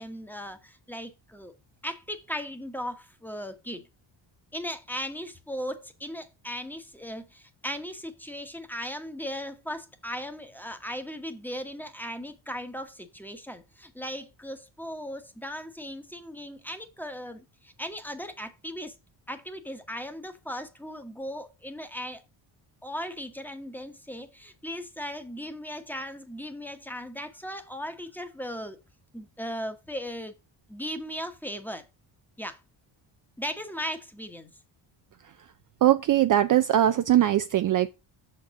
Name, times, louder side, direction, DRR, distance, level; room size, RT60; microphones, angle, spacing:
voice 1, 0.0-1.5 1.8-3.9 4.5-18.9 19.3-22.2 22.8-28.8 29.1-30.3 30.7-31.9 32.4-32.6 33.4-34.5, equal, 5° left, 1.1 m, -37 dB
voice 2, 35.8-37.9, right 12 dB, 45° right, 0.4 m, -21 dB
6.5 x 4.4 x 5.8 m
cardioid pair, 110°, 47 cm